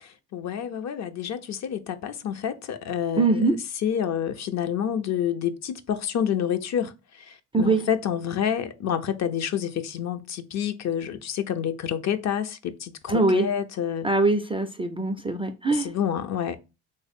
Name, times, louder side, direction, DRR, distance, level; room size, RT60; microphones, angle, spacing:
voice 1, 0.1-14.1 15.7-16.6, left 9 dB, 45° left, 0.5 m, -28 dB
voice 2, 3.2-3.5 7.5-7.8 13.1-13.5 14.0-15.9, right 2 dB, 15° right, 0.3 m, -22 dB
3.0 x 2.0 x 4.1 m
supercardioid pair, 80°, 38 cm